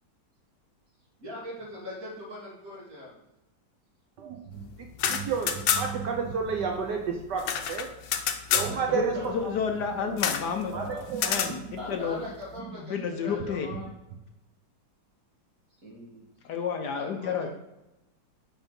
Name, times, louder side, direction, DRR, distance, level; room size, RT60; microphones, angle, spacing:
voice 1, 1.2-3.2 8.7-9.5 10.7-11.1 11.8-13.9 15.8-16.2 17.0-17.5, left 2 dB, 45° right, -5 dB, 3.3 m, -41 dB
voice 2, 4.2-4.6 5.0-7.9 8.5-9.5 9.9-10.2 10.7-11.5, right 6 dB, 65° right, 2 dB, 1.4 m, -31 dB
sound 1, 4.9-6.1 6.4-6.5 6.7-8.7 10.2-10.5 11.1-11.6, left 8 dB, 90° left, 1.5 m, -28 dB
voice 3, 8.9-10.7 11.2-12.2 12.8-13.7 16.4-17.5, left 6 dB, 65° left, 5 dB, 1.3 m, -30 dB
7.2 x 5.7 x 5.3 m, 0.93 s
omnidirectional pair, 2.1 m